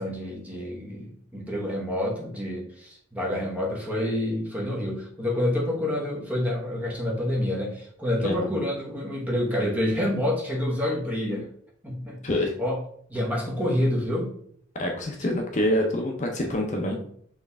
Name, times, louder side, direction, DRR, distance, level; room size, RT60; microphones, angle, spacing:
voice 1, 0.0-11.5 11.8-12.2 12.6-12.8 13.1-14.3 16.3-16.5, left 1 dB, 10° right, -3 dB, 1.1 m, -28 dB
voice 2, 14.8-17.0, left 1 dB, 40° left, 2 dB, 0.6 m, -26 dB
4.4 x 3.3 x 3.4 m, 0.63 s
head